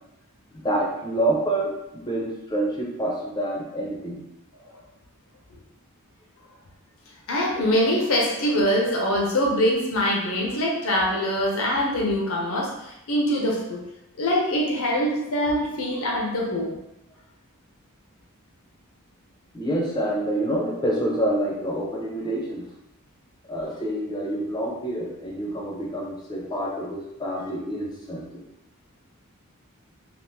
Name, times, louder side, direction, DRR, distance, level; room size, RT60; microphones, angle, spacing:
voice 1, 0.6-4.2 19.5-22.6 23.5-28.4, right 1 dB, 20° left, -2 dB, 0.6 m, -27 dB
voice 2, 7.3-13.8 14.2-16.7, equal, 70° left, -2 dB, 0.6 m, -23 dB
3.5 x 2.5 x 2.7 m, 0.86 s
head